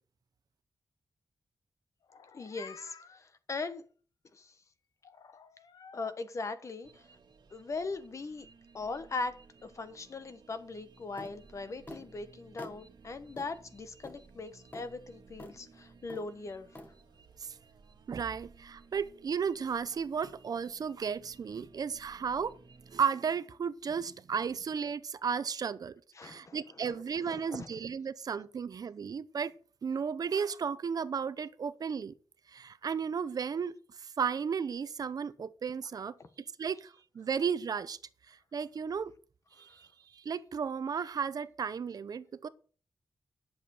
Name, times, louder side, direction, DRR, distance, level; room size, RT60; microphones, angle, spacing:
Meow, 2.0-3.2 5.0-6.1, left 5 dB, 75° left, 1.0 m, -52 dB
voice 1, 2.3-3.8 4.3-4.5 5.9-7.1 7.5-8.5 8.7-16.7 26.2-26.6 27.3-27.7, left 3 dB, 45° left, 1.3 m, -40 dB
sound 1, 6.8-23.0, right 4 dB, 80° right, 1.7 m, -58 dB
sound 2, 11.2-11.4 11.9-12.1 12.6-12.8 13.4-13.5 14.0-14.2 14.7-14.9 15.4-15.6 16.1-16.3 16.7-16.9, left 1 dB, 20° left, 1.5 m, -46 dB
voice 2, 18.1-22.5 22.9-25.9 26.2-29.5 29.8-32.1 32.5-36.1 36.6-38.0 38.3-39.1 39.6-42.5, right 6 dB, 60° right, 0.7 m, -34 dB
11.0 x 7.1 x 6.5 m
wide cardioid pair, 160°, 7 cm